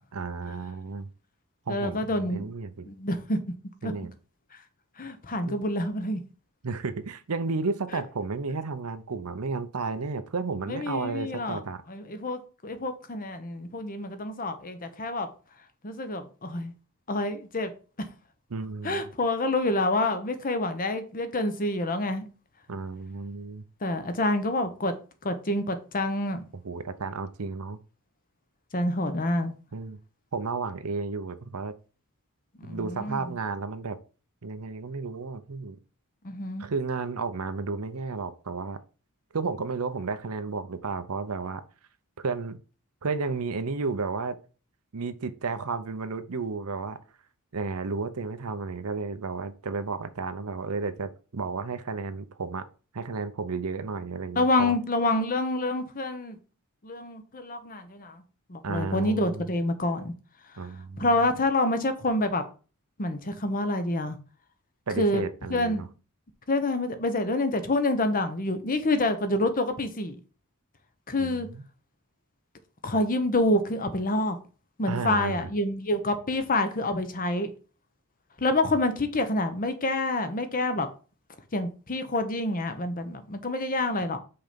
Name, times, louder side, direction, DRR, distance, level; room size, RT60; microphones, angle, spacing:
voice 1, 0.1-1.1 1.7-2.9 3.8-4.1 5.5-5.6 6.6-11.8 18.5-19.1 22.7-23.6 26.6-27.8 29.7-30.0 30.3-31.7 32.6-34.0 34.4-35.8 36.6-38.8 39.3-41.6 42.2-42.6 43.0-44.4 44.9-47.0 47.5-52.6 52.9-54.8 58.6-59.5 60.6-61.1 64.9-65.9 71.2-71.6 74.9-75.5, right 4 dB, 75° right, 0.7 m, -32 dB
voice 2, 1.7-2.5 2.8-3.4 3.8-3.9 5.0-6.2 10.7-11.6 11.9-15.3 15.8-16.7 17.1-17.7 18.8-22.3 23.8-24.9 25.2-26.4 28.7-29.5 32.6-33.3 36.2-36.7 54.4-56.4 56.8-58.2 58.5-60.1 61.0-62.4 63.0-64.2 65.0-65.2 65.5-65.9 66.5-70.2 71.1-71.5 72.8-74.4 74.8-77.5 78.4-80.9 81.5-84.2, left 2 dB, 40° left, 0.9 m, -27 dB
5.8 x 4.3 x 5.1 m
head